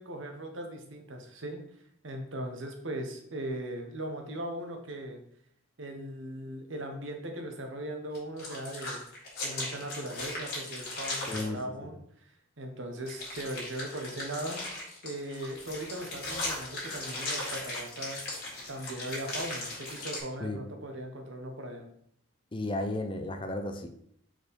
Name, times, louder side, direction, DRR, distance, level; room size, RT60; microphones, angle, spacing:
voice 1, 0.0-1.6 2.0-5.2 5.8-9.0 9.4-12.3 12.6-14.8 15.0-18.2 18.7-21.9, right 1 dB, 80° right, 3 dB, 1.2 m, -39 dB
sound 1, 8.1-11.5 13.1-20.2, left 2 dB, 50° left, 2.2 m, -38 dB
voice 2, 11.3-11.9 20.4-20.6 22.5-23.9, left 1 dB, 25° left, 5 dB, 0.6 m, -34 dB
4.6 x 4.5 x 5.3 m, 0.68 s
head